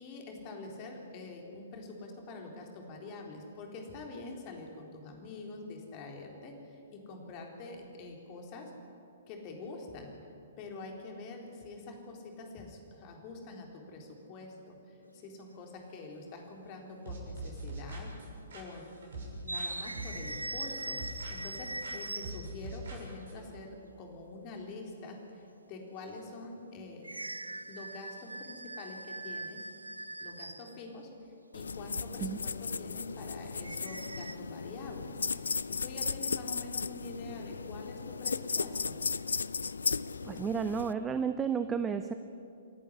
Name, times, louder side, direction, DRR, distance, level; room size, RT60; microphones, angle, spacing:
voice 1, 0.0-8.7 9.3-10.1 10.6-18.1 18.5-18.9 19.2-25.4 25.7-27.1 27.7-29.7 30.2-35.5 35.8-39.0, left 3 dB, 30° left, 2 dB, 3.9 m, -46 dB
sound 1, 15.1-15.3 16.5-16.6 17.6-18.0 18.3-18.4 19.4-22.7 27.0-30.8 33.6-34.4, right 2 dB, 80° right, 1.0 m, -41 dB
sound 2, 17.1-19.7 20.0-21.6 21.8-23.4, right 1 dB, 60° right, 6.5 m, -43 dB
sound 3, 31.5-40.9, left 5 dB, 65° left, 0.5 m, -36 dB
voice 2, 40.2-42.1, right 6 dB, 15° right, 10 dB, 0.7 m, -32 dB
28.0 x 11.0 x 10.0 m, 2.6 s
figure-of-eight pair, 120°, 0 cm